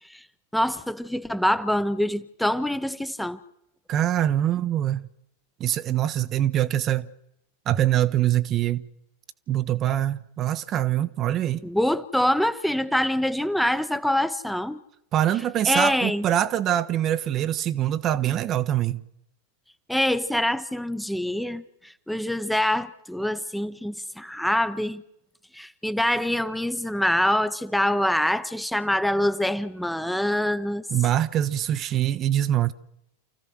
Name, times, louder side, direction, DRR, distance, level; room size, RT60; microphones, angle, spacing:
voice 1, 0.5-3.4 11.6-14.8 15.7-16.2 19.9-25.0 25.5-30.8, left 1 dB, ahead, 0.9 m, -25 dB
voice 2, 3.9-5.0 5.6-7.1 7.7-8.9 9.5-11.6 15.1-19.0 30.9-32.7, right 12 dB, 30° right, 0.9 m, -24 dB
29.0 x 15.0 x 6.2 m
figure-of-eight pair, 90°, 0 cm